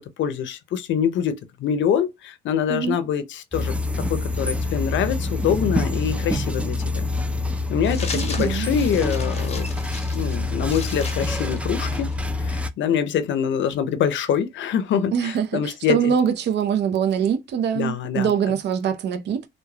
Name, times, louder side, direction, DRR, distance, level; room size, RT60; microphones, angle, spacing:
voice 1, 0.0-7.1 7.7-9.7 10.1-12.1 12.4-16.1 17.7-18.3, left 8 dB, 70° left, 0.6 m, -25 dB
sound 1, 3.5-12.7, left 2 dB, 5° right, 0.4 m, -26 dB
sound 2, 7.8-12.3, left 4 dB, 35° left, 0.6 m, -37 dB
voice 2, 8.1-8.7 15.1-19.5, right 8 dB, 60° right, 0.6 m, -23 dB
3.1 x 2.1 x 2.2 m
cardioid pair, 90°, 20 cm